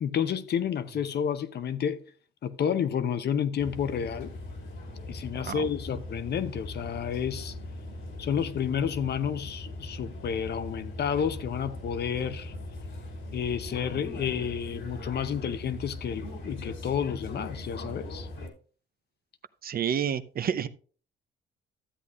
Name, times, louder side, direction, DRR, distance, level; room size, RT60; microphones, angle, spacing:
voice 1, 0.0-2.0 2.4-4.3 5.1-7.5 8.2-12.5 13.3-18.3, left 8 dB, 55° left, 0.8 m, -30 dB
sound 1, 3.6-18.5, left 1 dB, 75° left, 2.5 m, -40 dB
voice 2, 19.6-20.7, right 8 dB, 50° right, 0.6 m, -29 dB
12.5 x 8.2 x 2.5 m
cardioid pair, 90°, 20 cm